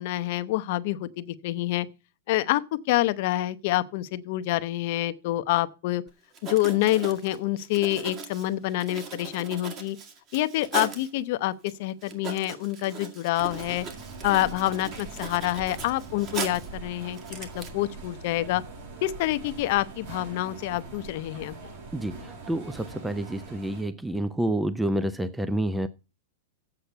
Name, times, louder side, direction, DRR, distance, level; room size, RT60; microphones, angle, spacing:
voice 1, 0.0-1.9 2.3-2.6 2.9-6.0 6.4-10.0 10.3-13.9 14.2-18.6 19.0-21.5, left 16 dB, 50° left, 0.7 m, -27 dB
Writing, 6.1-6.2 6.3-11.1 11.7-11.8 12.0-16.8 17.1-17.7, right 4 dB, 30° right, 1.9 m, -38 dB
sound 1, 13.4-23.8, right 3 dB, 55° right, 5.4 m, -42 dB
voice 2, 21.9-25.9, right 1 dB, 5° right, 0.4 m, -29 dB
8.2 x 5.8 x 7.9 m
hypercardioid pair, 145°, 0 cm